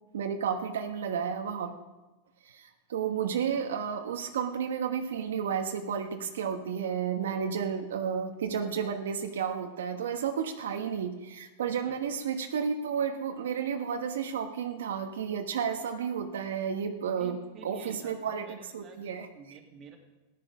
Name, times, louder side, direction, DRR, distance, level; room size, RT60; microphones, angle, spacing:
voice 1, 0.1-1.8 2.4-17.4 17.6-19.3, right 7 dB, 90° right, 5 dB, 1.2 m, -32 dB
voice 2, 11.6-12.0 17.2-20.0, right 5 dB, 30° right, 2 dB, 2.2 m, -51 dB
14.0 x 10.5 x 6.0 m, 1.1 s
supercardioid pair, 145°, 0 cm